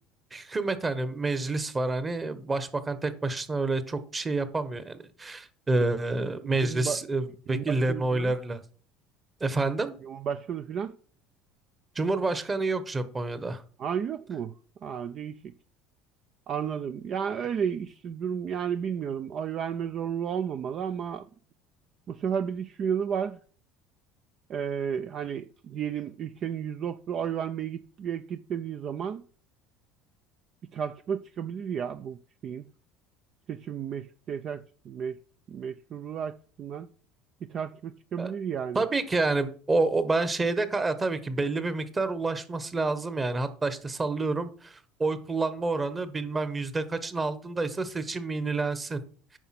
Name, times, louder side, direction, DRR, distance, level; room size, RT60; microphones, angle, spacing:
voice 1, 0.3-8.6 9.4-9.9 11.9-13.6 38.2-38.3 38.7-49.0, right 3 dB, 20° right, 1.3 m, -28 dB
voice 2, 6.4-7.0 7.5-8.3 10.0-11.0 13.8-14.5 14.8-15.5 16.5-21.3 22.1-23.4 24.5-29.2 30.7-32.6 33.5-35.2 35.5-36.9 37.5-38.8, right 8 dB, 45° right, 0.5 m, -33 dB
9.0 x 5.7 x 5.9 m
hypercardioid pair, 85°, 0 cm